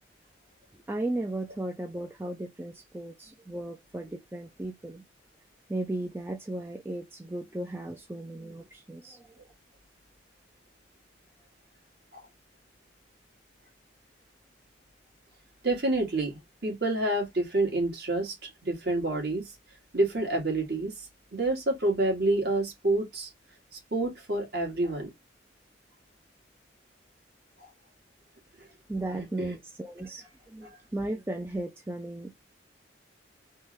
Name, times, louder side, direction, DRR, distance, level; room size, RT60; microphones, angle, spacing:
voice 1, 0.9-5.0 5.7-9.4 28.9-32.4, right 1 dB, 10° right, 0.4 m, -36 dB
voice 2, 15.6-19.5 19.9-23.3 23.7-25.1 27.6-27.7 28.6-28.7 29.1-29.6 30.6-30.8, right 2 dB, 55° right, 1.7 m, -28 dB
3.7 x 2.6 x 3.0 m
head